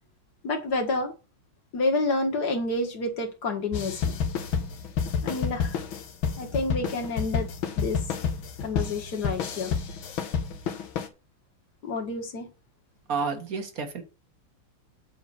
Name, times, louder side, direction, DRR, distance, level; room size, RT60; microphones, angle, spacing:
voice 1, 0.4-1.1 1.7-4.2 5.2-5.8 6.4-7.5 7.8-8.0 8.6-9.7 11.8-12.5, left 2 dB, 55° left, 2.2 m, -29 dB
sound 1, 3.7-11.1, left 6 dB, 85° left, 1.9 m, -30 dB
voice 2, 13.1-14.0, right 5 dB, 50° right, 1.8 m, -30 dB
8.6 x 4.0 x 6.7 m
omnidirectional pair, 2.2 m